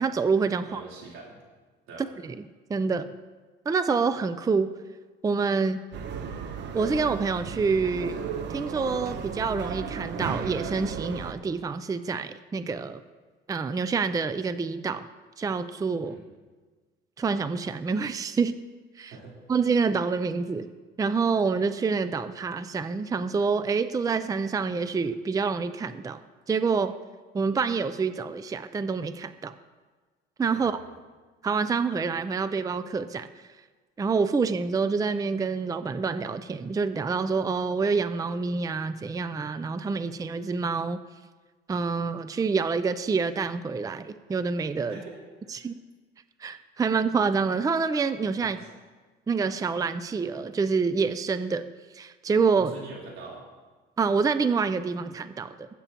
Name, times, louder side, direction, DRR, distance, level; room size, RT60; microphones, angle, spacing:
voice 1, 0.0-0.8 2.2-2.4 2.7-3.1 3.7-4.7 5.2-5.8 6.7-8.2 8.5-13.0 13.5-15.1 15.4-16.1 17.2-18.6 19.0-19.1 19.5-20.7 21.0-26.2 26.5-26.9 27.3-29.5 30.4-30.8 31.4-33.5 34.0-41.0 41.7-45.0 45.5-45.8 46.4-48.6 49.3-51.7 51.9-52.7 54.0-55.7, right 5 dB, 15° right, 12 dB, 0.4 m, -27 dB
voice 2, 0.6-1.4 1.9-2.0 16.0-16.2 19.1-19.4 30.5-31.0 44.9-45.7 48.4-48.7 52.6-53.4, right 3 dB, 85° right, -4 dB, 3.6 m, -44 dB
sound 1, 5.9-11.3, right 7 dB, 60° right, 0.9 m, -34 dB
20.0 x 8.4 x 2.9 m, 1.4 s
cardioid pair, 105°, 20 cm